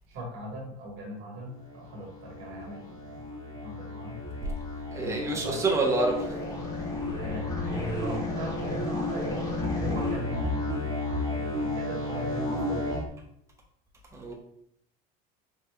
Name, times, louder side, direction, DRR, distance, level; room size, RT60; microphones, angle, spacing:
voice 1, 0.1-3.2 3.6-4.2 5.0-5.6 7.1-9.4 9.7-12.9, equal, 70° right, 0 dB, 1.5 m, -39 dB
sound 1, 1.6-13.0, left 2 dB, 15° left, 1.3 m, -32 dB
voice 2, 4.9-6.2 14.1-14.3, right 2 dB, 15° right, 0 dB, 1.0 m, -27 dB
4.2 x 3.3 x 3.4 m, 0.72 s
cardioid pair, 130°, 19 cm